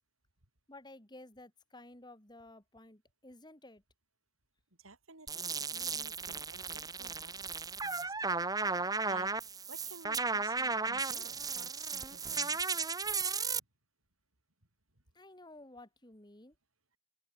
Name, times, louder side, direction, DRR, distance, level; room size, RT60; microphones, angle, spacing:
voice 1, 0.7-3.8 15.2-16.5, left 2 dB, 20° left, 2.5 m, -53 dB
voice 2, 4.8-8.3 9.0-12.8 14.9-15.0, right 3 dB, 85° right, 4.6 m, -54 dB
sound 1, 5.3-13.6, right 4 dB, 20° right, 2.0 m, -35 dB
open air
head